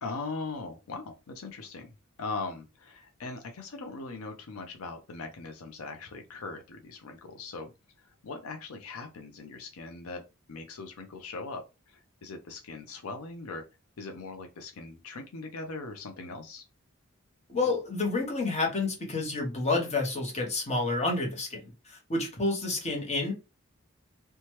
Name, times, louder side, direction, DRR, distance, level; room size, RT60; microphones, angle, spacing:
voice 1, 0.0-1.9 2.2-7.7 8.0-10.2 10.5-13.6 14.0-16.6, left 3 dB, 75° left, 0.5 m, -40 dB
voice 2, 17.5-23.3, left 3 dB, 30° left, 0.9 m, -29 dB
2.9 x 2.2 x 3.0 m
head